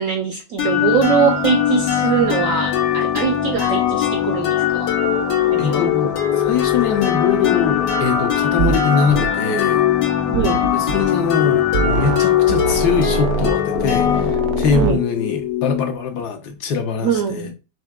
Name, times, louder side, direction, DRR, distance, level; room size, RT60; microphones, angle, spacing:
voice 1, 0.0-4.9 5.5-5.9 10.3-10.6 14.7-15.0 17.0-17.5, right 6 dB, 70° right, 0.8 m, -22 dB
sound 1, 0.6-16.2, left 9 dB, 85° left, 1.7 m, -20 dB
voice 2, 5.6-9.8 10.7-17.5, left 5 dB, 70° left, 1.2 m, -22 dB
sound 2, 8.6-8.8 9.1-9.3 10.3-11.1 11.7-12.2 12.5-15.0, right 7 dB, 90° right, 1.3 m, -23 dB
5.7 x 2.7 x 2.3 m
omnidirectional pair, 1.9 m